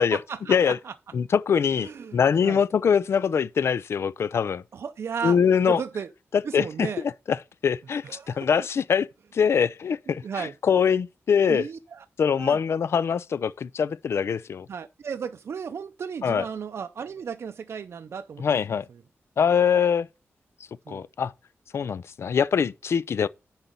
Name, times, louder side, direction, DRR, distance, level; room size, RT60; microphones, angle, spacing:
voice 1, 0.0-0.9 1.8-2.6 4.7-5.4 5.7-6.1 6.4-7.0 8.0-8.7 10.1-10.5 11.5-12.6 14.7-18.6 18.9-19.0 20.9-21.0, right 6 dB, 65° right, 0.5 m, -35 dB
voice 2, 1.1-4.6 5.2-5.8 6.5-6.9 7.3-7.4 7.6-9.1 9.3-11.7 12.2-14.7 16.2-16.4 18.4-18.9 19.4-20.1 20.9-21.3 21.7-23.3, left 7 dB, 65° left, 0.4 m, -23 dB
10.0 x 4.1 x 5.2 m
wide cardioid pair, 135°, 5 cm